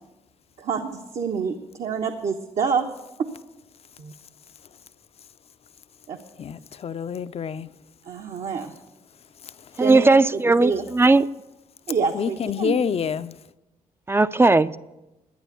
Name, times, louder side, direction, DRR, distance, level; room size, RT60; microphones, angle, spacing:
voice 1, 0.6-2.9 3.2-3.3 4.0-4.1 6.1-6.2 8.0-8.8 9.8-10.9 11.9-12.8, right 5 dB, 65° right, 1.1 m, -27 dB
voice 2, 6.4-7.7 12.1-13.4, left 7 dB, 50° left, 0.6 m, -27 dB
voice 3, 9.8-11.2 14.1-14.8, right 3 dB, 20° right, 0.5 m, -17 dB
11.5 x 9.1 x 8.3 m
cardioid pair, 75°, 13 cm